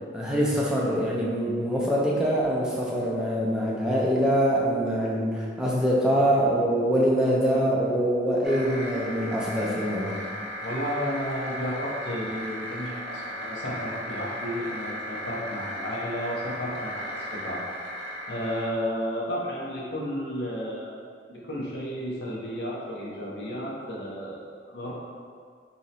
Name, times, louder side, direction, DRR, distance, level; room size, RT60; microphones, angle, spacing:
voice 1, 0.1-10.2, equal, 5° right, -5 dB, 0.4 m, -24 dB
sound 1, 8.4-18.7, equal, 75° right, 0.7 m, -36 dB
voice 2, 10.6-17.6 18.3-21.0 21.3-24.9, equal, 75° left, -4 dB, 0.7 m, -32 dB
2.7 x 2.1 x 3.9 m, 2.1 s
head